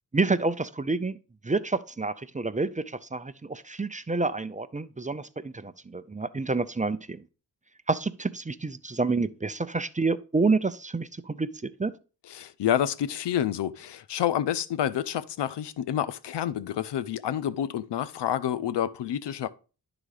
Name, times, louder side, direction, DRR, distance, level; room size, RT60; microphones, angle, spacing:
voice 1, 0.1-1.2 1.4-7.2 7.9-11.9, right 3 dB, 20° right, 0.5 m, -28 dB
voice 2, 12.3-19.5, left 10 dB, 85° left, 0.6 m, -28 dB
11.0 x 4.0 x 4.8 m
cardioid pair, 55°, 41 cm